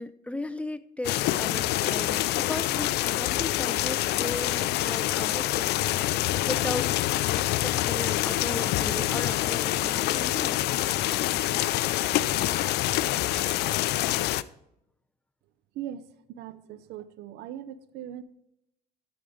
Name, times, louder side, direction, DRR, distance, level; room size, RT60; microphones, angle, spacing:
voice 1, 0.0-5.7 6.5-10.5, left 1 dB, 5° left, 11 dB, 0.6 m, -36 dB
sound 1, 1.0-14.4, left 15 dB, 80° left, 0.4 m, -26 dB
voice 2, 16.3-18.2, right 11 dB, 85° right, 15 dB, 0.7 m, -39 dB
13.0 x 5.1 x 4.9 m, 0.80 s
cardioid pair, 110°, 17 cm